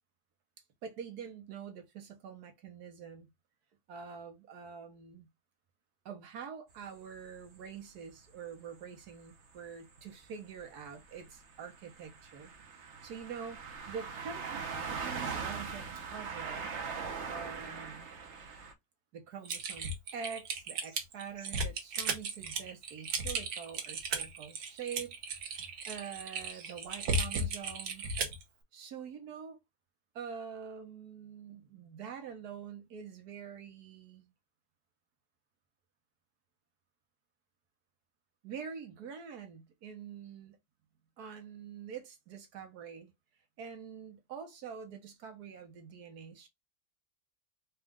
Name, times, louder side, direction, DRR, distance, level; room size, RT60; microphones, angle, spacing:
voice 1, 0.8-3.3 3.9-5.3 6.0-12.5 13.0-16.7 17.3-18.1 19.1-28.1 28.7-29.6 30.1-34.3 38.4-40.6 41.2-43.1 43.6-46.5, right 7 dB, 70° right, 1.5 m, -45 dB
sound 1, 6.7-6.8 8.3-8.4 9.0-9.2 9.5-9.7 9.9-18.7, right 5 dB, 50° right, 1.0 m, -41 dB
Typing, 19.5-28.4, right 3 dB, 90° right, 1.5 m, -35 dB
4.2 x 2.4 x 3.5 m
omnidirectional pair, 1.8 m